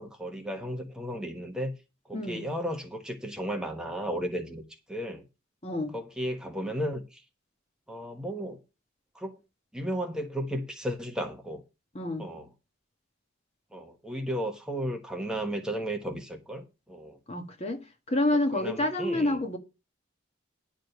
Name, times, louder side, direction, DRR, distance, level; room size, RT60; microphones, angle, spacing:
voice 1, 0.0-1.7 2.1-4.6 4.9-5.2 5.9-7.2 7.9-8.6 9.1-9.4 9.7-11.6 12.2-12.5 13.7-17.2 18.5-19.4, equal, 5° right, 1.2 m, -34 dB
voice 2, 2.1-2.5 5.6-5.9 11.9-12.3 17.3-19.6, left 1 dB, 30° left, 1.4 m, -28 dB
10.5 x 5.0 x 6.7 m
head